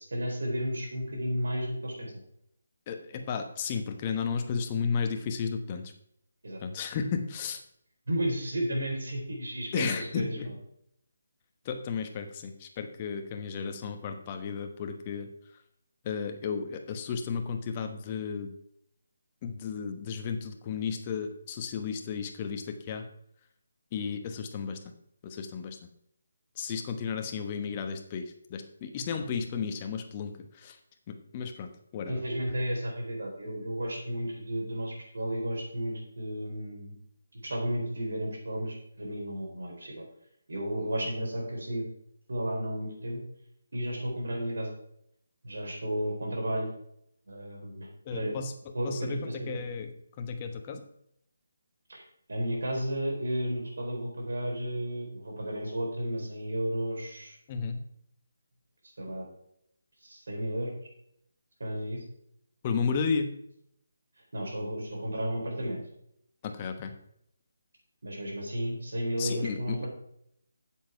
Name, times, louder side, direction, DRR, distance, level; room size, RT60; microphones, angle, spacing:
voice 1, 0.1-2.1 6.4-6.6 8.1-10.5 32.1-37.0 37.3-40.0 40.5-41.8 42.3-43.2 43.7-44.7 45.4-46.7 47.3-48.4 48.7-49.6 51.9-52.0 52.3-57.4 59.0-59.2 60.0-60.9 61.6-62.0 64.3-65.8 68.0-69.9, equal, 75° right, -1 dB, 4.4 m, -33 dB
voice 2, 2.9-5.8 6.6-7.6 9.7-10.5 11.6-15.3 16.0-18.5 19.4-23.0 23.9-24.8 25.2-25.8 26.6-30.8 31.1-32.2 48.1-48.5 48.8-49.9 50.2-50.8 57.5-57.8 62.6-63.3 66.4-66.9 69.2-69.9, left 6 dB, 25° left, 6 dB, 1.1 m, -33 dB
8.6 x 7.5 x 4.8 m, 0.74 s
figure-of-eight pair, 160°, 0 cm